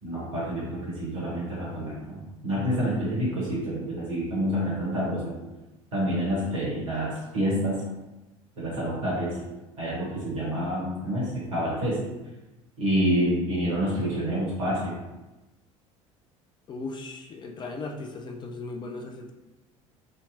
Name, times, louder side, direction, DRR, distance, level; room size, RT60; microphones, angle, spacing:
voice 1, 0.0-5.3 5.9-7.8 8.6-9.3 9.8-12.0 12.8-14.9, equal, 75° right, -7 dB, 1.4 m, -28 dB
voice 2, 16.7-19.3, left 3 dB, 25° left, 3 dB, 0.4 m, -37 dB
3.1 x 2.7 x 2.6 m, 1.1 s
figure-of-eight pair, 65°, 17 cm